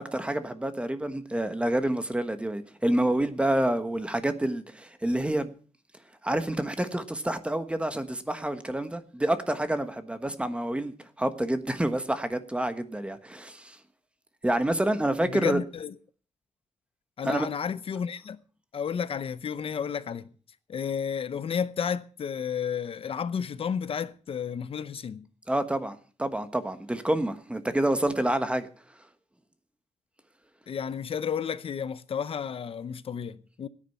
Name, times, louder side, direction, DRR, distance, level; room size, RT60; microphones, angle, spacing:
voice 1, 0.0-5.5 6.2-13.8 14.4-15.6 17.2-17.5 25.5-28.7, right 1 dB, 10° right, 1.2 m, -28 dB
voice 2, 15.2-15.9 17.2-18.4 18.7-20.3 20.7-25.3 30.7-33.7, left 7 dB, 60° left, 0.7 m, -32 dB
16.5 x 9.9 x 5.6 m
wide cardioid pair, 125°, 11 cm